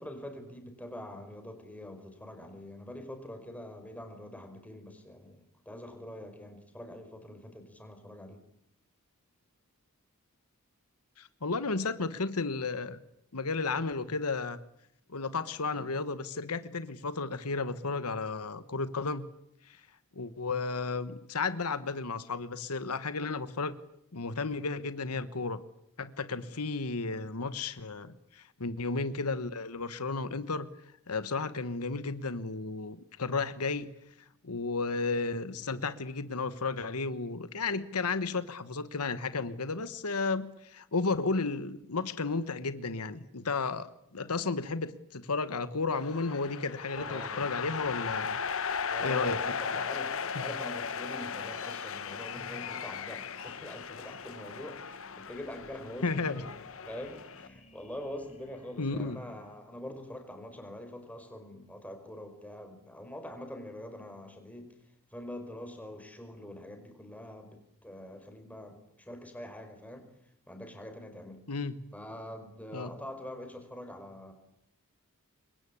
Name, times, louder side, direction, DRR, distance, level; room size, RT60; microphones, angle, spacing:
voice 1, 0.0-8.4 27.1-27.3 46.9-47.5 48.9-56.5 56.9-64.8 65.1-70.1 70.5-71.4 71.9-74.3, left 1 dB, 5° left, 5 dB, 5.0 m, -44 dB
voice 2, 11.2-13.0 13.3-14.6 15.1-19.3 19.7-19.8 20.1-23.8 24.1-25.6 26.0-30.7 31.1-33.9 34.4-48.4 49.0-49.4 50.3-50.5 56.0-56.4 58.8-59.2 71.5-71.8 72.7-72.9, left 4 dB, 90° left, 13 dB, 1.3 m, -33 dB
sound 1, 45.9-57.5, left 6 dB, 65° left, 1.3 m, -37 dB
sound 2, 52.3-59.6, left 2 dB, 30° left, 4.6 m, -57 dB
27.0 x 23.0 x 8.6 m, 0.76 s
head